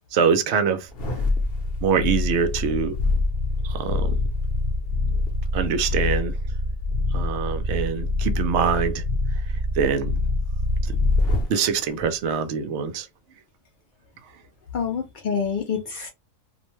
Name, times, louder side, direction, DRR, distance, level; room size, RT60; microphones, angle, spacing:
voice 1, 0.1-0.9 1.8-3.0 3.6-4.2 5.5-6.4 7.1-9.0 9.8-10.2 10.8-11.0 11.5-13.1, right 6 dB, 65° right, 0.7 m, -24 dB
sound 1, 0.9-11.6 12.0-12.1, left 2 dB, 50° left, 0.8 m, -25 dB
voice 2, 14.7-16.1, left 6 dB, 80° left, 0.4 m, -27 dB
2.5 x 2.1 x 3.0 m
omnidirectional pair, 1.4 m